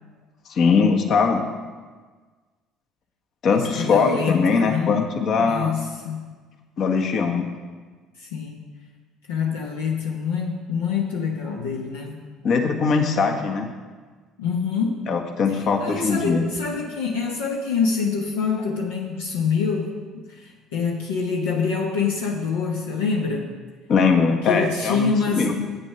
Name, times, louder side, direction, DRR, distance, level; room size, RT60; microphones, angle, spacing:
voice 1, 0.5-1.4 3.4-5.7 6.8-7.5 12.4-13.7 15.1-16.4 23.9-25.5, left 5 dB, 55° left, 4 dB, 1.3 m, -21 dB
voice 2, 3.5-6.2 8.2-8.7 9.3-12.2 14.4-15.1 15.5-23.5 24.4-25.6, left 5 dB, 80° left, -1 dB, 0.9 m, -26 dB
8.6 x 8.3 x 5.6 m, 1.4 s
hypercardioid pair, 60°, 0 cm